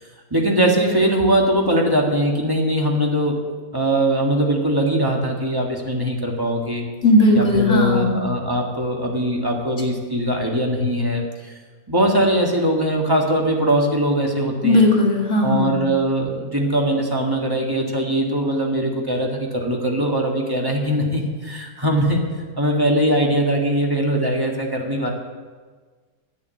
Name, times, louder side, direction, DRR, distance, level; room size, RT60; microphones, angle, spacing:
voice 1, 0.3-3.4 3.7-6.8 7.3-11.5 11.9-14.8 15.4-22.2 22.6-25.1, right 1 dB, 10° right, -1 dB, 1.4 m, -21 dB
voice 2, 7.0-8.2 14.6-15.8, left 1 dB, 35° left, -2 dB, 2.2 m, -16 dB
10.5 x 8.7 x 8.2 m, 1.5 s
omnidirectional pair, 2.4 m